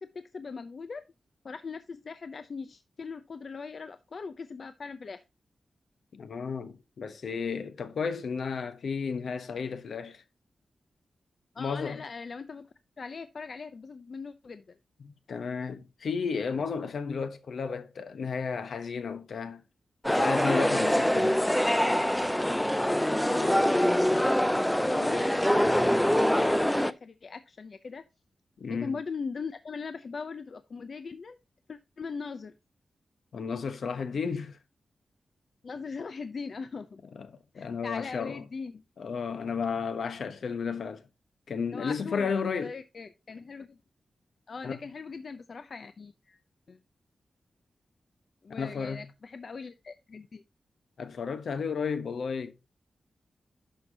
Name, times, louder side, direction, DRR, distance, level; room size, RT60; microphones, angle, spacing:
voice 1, 0.3-1.0 1.4-5.2 11.5-12.6 13.0-14.6 23.1-24.3 24.6-28.0 28.7-31.4 31.7-32.5 35.6-37.0 37.5-38.8 41.7-42.3 42.6-43.8 44.5-46.4 46.7-46.8 48.4-50.4, left 5 dB, 50° left, 0.6 m, -40 dB
voice 2, 6.1-10.2 11.6-12.0 15.0-19.6 20.1-21.4 28.6-29.0 33.3-34.6 37.1-38.4 39.0-41.0 41.5-42.7 44.6-44.8 48.5-49.1 51.0-52.5, left 5 dB, 70° left, 1.1 m, -33 dB
sound 1, 20.0-26.9, equal, 5° left, 0.4 m, -24 dB
11.5 x 5.8 x 2.8 m
wide cardioid pair, 130°, 0 cm